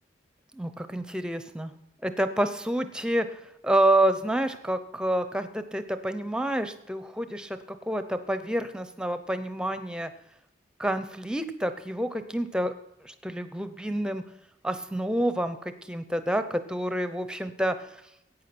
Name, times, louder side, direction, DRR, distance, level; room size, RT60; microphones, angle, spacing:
voice 1, 0.5-1.7 2.0-3.3 3.6-10.1 10.8-12.7 13.0-14.2 14.6-17.7, right 1 dB, 5° right, 10 dB, 0.7 m, -28 dB
14.0 x 9.0 x 6.0 m, 0.80 s
head